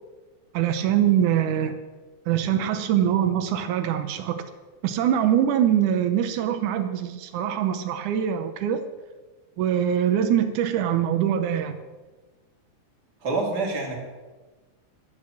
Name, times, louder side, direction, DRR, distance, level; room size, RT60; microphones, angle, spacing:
voice 1, 0.5-1.8 2.3-4.4 4.8-8.8 9.6-11.8, right 10 dB, 90° right, 8 dB, 2.3 m, -23 dB
voice 2, 13.2-14.0, right 3 dB, 35° right, -2 dB, 3.4 m, -26 dB
11.0 x 10.5 x 7.2 m, 1.3 s
omnidirectional pair, 3.4 m